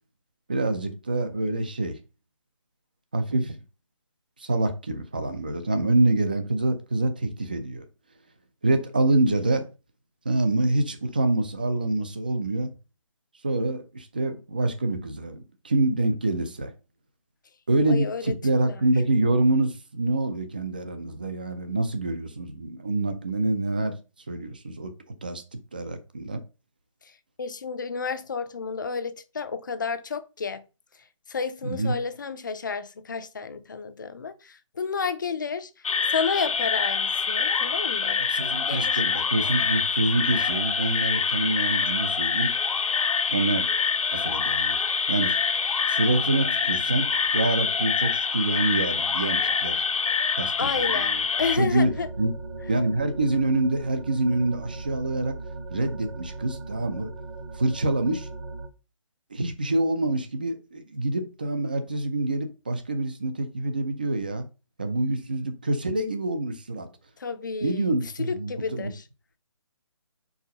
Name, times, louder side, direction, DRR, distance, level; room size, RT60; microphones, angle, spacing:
voice 1, 0.5-2.0 3.1-3.6 4.4-7.8 8.6-9.7 10.2-12.7 13.4-16.7 17.7-24.0 24.3-24.9 25.2-25.4 25.7-26.4 31.6-32.0 38.2-42.5 43.3-43.7 44.1-44.8 45.1-45.4 45.9-49.8 50.4-51.2 51.5-52.3 52.7-55.4 55.7-57.1 57.5-58.3 59.3-64.5 64.8-66.9 67.6-68.9, right 2 dB, 15° right, 0.4 m, -26 dB
voice 2, 17.9-18.3 27.4-30.6 31.3-35.7 36.1-38.2 38.7-39.0 50.6-52.1 67.2-67.9 68.3-69.0, left 5 dB, 35° left, 0.5 m, -31 dB
sound 1, 35.8-51.6, left 5 dB, 85° left, 0.7 m, -25 dB
sound 2, 51.4-58.7, right 3 dB, 40° right, 0.8 m, -38 dB
4.7 x 4.1 x 5.3 m
hypercardioid pair, 170°, 17 cm